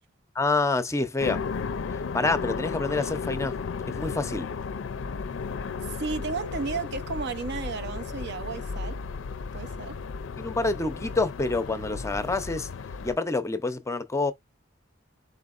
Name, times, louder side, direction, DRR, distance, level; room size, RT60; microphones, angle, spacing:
voice 1, 0.3-1.4 1.9-3.6 3.9-4.5 10.4-12.7 13.0-14.3, left 3 dB, 15° left, 0.5 m, -27 dB
sound 1, 1.2-13.1, left 5 dB, 75° left, 0.4 m, -34 dB
sound 2, 2.4-12.7, right 1 dB, 75° right, 1.6 m, -58 dB
voice 2, 5.9-9.0 9.5-10.0, right 4 dB, 60° right, 0.5 m, -33 dB
4.2 x 3.9 x 2.4 m
head